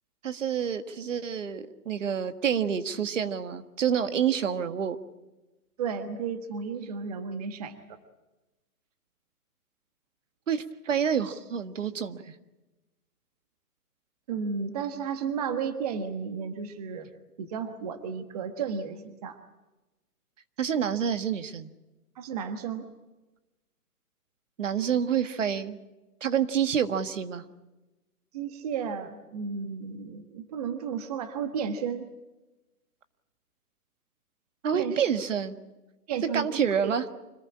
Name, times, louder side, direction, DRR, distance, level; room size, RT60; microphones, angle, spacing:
voice 1, 0.2-5.0 10.5-12.2 20.6-21.7 24.6-25.8 26.2-27.4 34.6-35.6 36.3-37.0, right 8 dB, 50° right, 10 dB, 1.7 m, -28 dB
voice 2, 5.8-7.8 14.3-17.1 17.4-19.4 22.2-22.9 28.3-32.1 34.7-35.0 36.1-36.9, right 6 dB, 25° right, 8 dB, 1.3 m, -33 dB
26.0 x 19.5 x 8.6 m, 1.1 s
hypercardioid pair, 170°, 46 cm